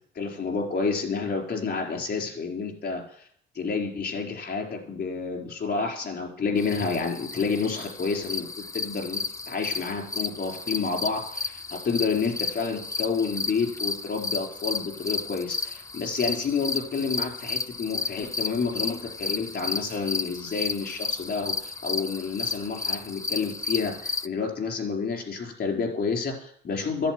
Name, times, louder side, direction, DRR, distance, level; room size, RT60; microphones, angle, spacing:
voice 1, 0.1-3.3 3.5-27.1, left 5 dB, 55° left, 2 dB, 4.3 m, -29 dB
sound 1, 6.6-24.3, left 4 dB, 15° left, 0.6 m, -33 dB
11.0 x 8.3 x 9.1 m, 0.63 s
cardioid pair, 90°, 20 cm